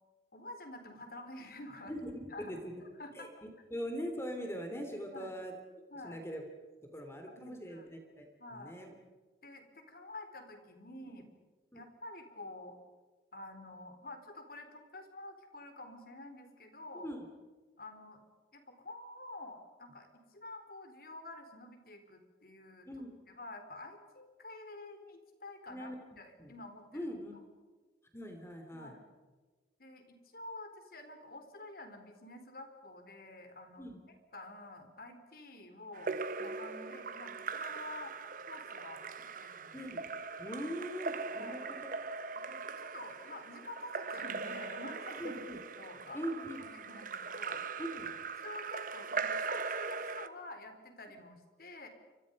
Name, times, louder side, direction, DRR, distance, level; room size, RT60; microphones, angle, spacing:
voice 1, 0.3-2.0 2.3-2.5 2.8-3.3 5.1-5.4 5.9-6.2 7.3-7.9 8.4-8.8 9.4-11.2 11.7-12.8 13.3-17.1 17.8-18.2 18.5-22.9 23.3-25.9 26.2-27.1 28.7-29.0 29.8-34.0 34.3-38.2 38.5-39.0 39.4-39.8 41.4-41.6 42.4-45.5 45.8-46.2 46.6-47.6 48.4-51.9, left 2 dB, 55° left, 6 dB, 3.9 m, -49 dB
voice 2, 1.9-2.7 3.1-5.5 6.0-6.4 6.9-8.2 8.5-8.9 11.1-11.2 11.7-11.8 16.9-17.2 22.9-23.1 25.7-26.0 26.4-26.5 26.9-27.3 28.1-28.9 33.8-34.0 39.7-40.0 40.4-41.9 45.2-45.6 46.1-46.6 47.8-48.2, equal, 15° left, 4 dB, 3.0 m, -41 dB
Splash splatter / Drip / Trickle dribble, 35.9-50.3, right 4 dB, 50° right, 1.1 m, -40 dB
29.0 x 25.5 x 5.4 m, 1.3 s
head